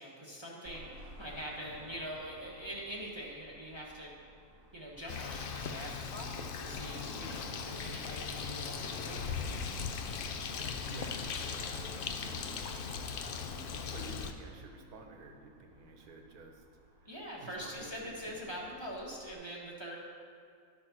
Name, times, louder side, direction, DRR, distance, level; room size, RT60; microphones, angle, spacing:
voice 1, 0.0-4.1 4.7-9.5 17.0-20.0, equal, 20° right, -4 dB, 1.0 m, -44 dB
Car passing by / Traffic noise roadway noise / Engine, 0.6-19.3, equal, 45° right, 1.1 m, -54 dB
Bird, 5.1-14.3, left 5 dB, 75° left, 0.5 m, -39 dB
voice 2, 10.6-12.7 13.4-16.6 17.0-18.6, right 3 dB, 80° right, 4 dB, 1.4 m, -52 dB
11.0 x 4.4 x 5.9 m, 2.2 s
omnidirectional pair, 1.6 m